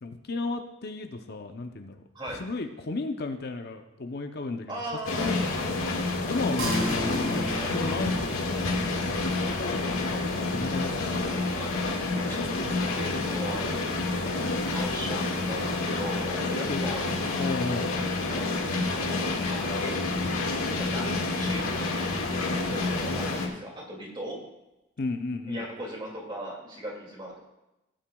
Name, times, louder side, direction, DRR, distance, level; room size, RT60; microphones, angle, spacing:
voice 1, 0.0-2.0 2.4-4.7 5.1-5.4 6.3-8.6 9.4-11.1 12.2-12.5 16.7-16.9 17.4-17.9 20.2-20.3 25.0-25.6, left 3 dB, 45° left, 6 dB, 0.6 m, -34 dB
voice 2, 4.7-5.6 11.5-11.8 12.1-14.2 14.7-17.1 17.9-18.1 19.2-20.0 20.7-24.4 25.5-27.4, right 1 dB, 20° right, -1 dB, 2.3 m, -39 dB
sound 1, 5.0-23.5, left 3 dB, 80° left, 1.8 m, -29 dB
sound 2, 6.6-16.3, equal, 90° right, 3.0 m, -38 dB
17.5 x 8.8 x 2.3 m, 0.95 s
head